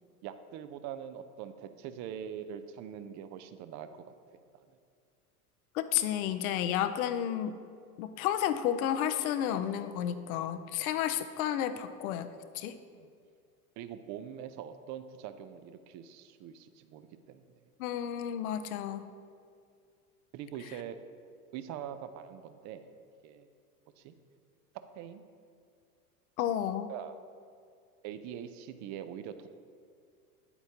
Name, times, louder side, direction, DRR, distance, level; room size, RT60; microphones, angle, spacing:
voice 1, 0.2-4.1 4.7-4.8 6.0-6.1 6.5-6.6 12.9-13.1 13.8-17.5 20.3-21.0 21.5-22.9 23.2-23.5 24.0-24.1 24.9-25.2 26.9-27.2 28.0-29.5, right 9 dB, 40° right, 10 dB, 0.6 m, -43 dB
voice 2, 5.7-7.5 8.0-12.3 12.5-12.8 17.8-19.1 26.4-26.9, left 10 dB, 65° left, 10 dB, 0.7 m, -31 dB
9.1 x 8.1 x 2.9 m, 2.2 s
hypercardioid pair, 100°, 46 cm